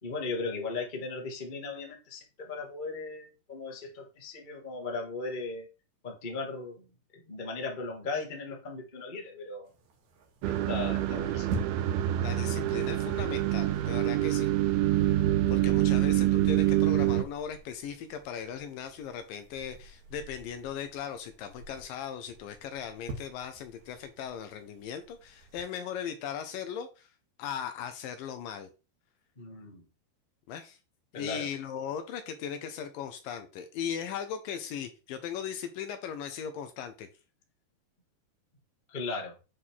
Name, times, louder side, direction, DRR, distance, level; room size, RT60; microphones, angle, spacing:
voice 1, 0.0-5.7 6.0-6.9 7.1-9.7 10.4-11.7 29.4-29.8 31.1-31.5 38.9-39.3, left 3 dB, 40° left, 0.6 m, -37 dB
sound 1, 9.6-25.6, right 2 dB, 60° right, 2.4 m, -46 dB
sound 2, 10.4-17.2, right 14 dB, 85° right, 2.6 m, -26 dB
voice 2, 12.2-14.5 15.5-27.1 27.4-28.7 30.5-30.8 31.1-37.1, left 8 dB, 75° left, 2.3 m, -38 dB
8.5 x 3.7 x 4.6 m
omnidirectional pair, 4.4 m